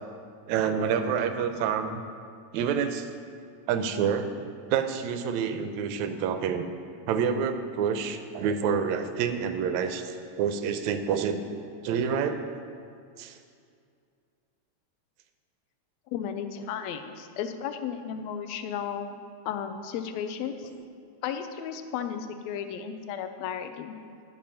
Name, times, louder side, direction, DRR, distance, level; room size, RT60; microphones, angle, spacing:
voice 1, 0.5-2.0 2.5-3.1 3.7-6.7 7.1-11.4 11.8-12.4 13.2-13.4 20.6-20.7, right 7 dB, 80° right, 8 dB, 1.9 m, -28 dB
voice 2, 16.1-19.2 19.5-20.7 21.2-24.0, left 8 dB, 80° left, 8 dB, 1.8 m, -34 dB
13.5 x 5.5 x 5.7 m, 2.3 s
omnidirectional pair, 3.4 m